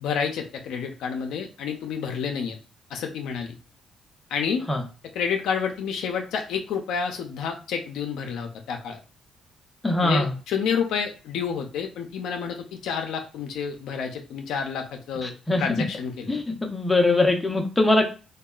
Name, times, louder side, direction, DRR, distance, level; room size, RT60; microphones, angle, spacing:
voice 1, 0.0-2.6 2.9-3.6 4.3-4.7 5.1-9.0 10.0-15.3 15.6-16.3, left 6 dB, 85° left, 3 dB, 0.4 m, -29 dB
voice 2, 9.8-10.3 15.2-15.6 16.3-16.4 16.7-18.1, left 2 dB, 15° left, 2 dB, 0.6 m, -21 dB
2.7 x 2.2 x 2.3 m, 0.34 s
cardioid pair, 90°, 0 cm